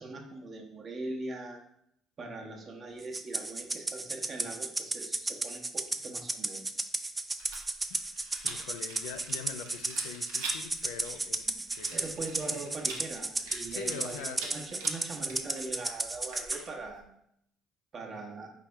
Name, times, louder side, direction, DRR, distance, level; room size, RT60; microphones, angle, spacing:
voice 1, 0.0-1.6 2.2-6.6 11.5-11.6 11.9-17.0 17.9-18.5, right 2 dB, 45° right, 1 dB, 0.9 m, -41 dB
Rattle (instrument), 3.1-16.6, right 2 dB, 20° right, 0.4 m, -34 dB
Rattle, 7.4-17.0, right 3 dB, 85° right, 0.8 m, -45 dB
voice 2, 8.4-12.1 13.7-14.5 18.1-18.2, left 8 dB, 85° left, 10 dB, 0.3 m, -43 dB
4.3 x 3.3 x 3.3 m, 0.75 s
hypercardioid pair, 65°, 0 cm